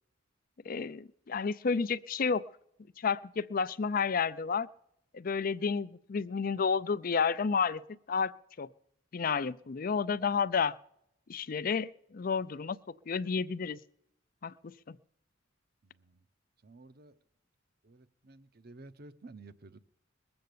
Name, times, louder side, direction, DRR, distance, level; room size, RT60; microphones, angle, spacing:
voice 1, 0.7-2.5 3.0-4.7 5.1-7.8 8.1-8.3 8.6-8.7 9.1-10.8 11.3-12.8 13.1-13.8 14.4-15.0, left 5 dB, 45° left, 17 dB, 0.5 m, -31 dB
voice 2, 15.8-16.2 16.6-17.2 17.8-19.8, right 2 dB, 55° right, 12 dB, 0.8 m, -53 dB
20.5 x 7.9 x 6.8 m, 0.77 s
head